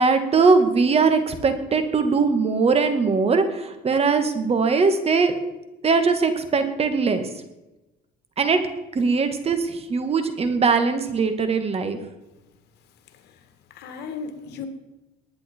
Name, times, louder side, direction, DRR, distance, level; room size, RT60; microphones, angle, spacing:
voice 1, 0.0-5.3 5.8-7.3 8.4-8.6 9.0-12.0, right 4 dB, 35° right, 8 dB, 1.9 m, -20 dB
voice 2, 13.7-14.7, left 5 dB, 75° left, 7 dB, 2.1 m, -36 dB
20.0 x 9.6 x 4.6 m, 1.0 s
cardioid pair, 110°, 17 cm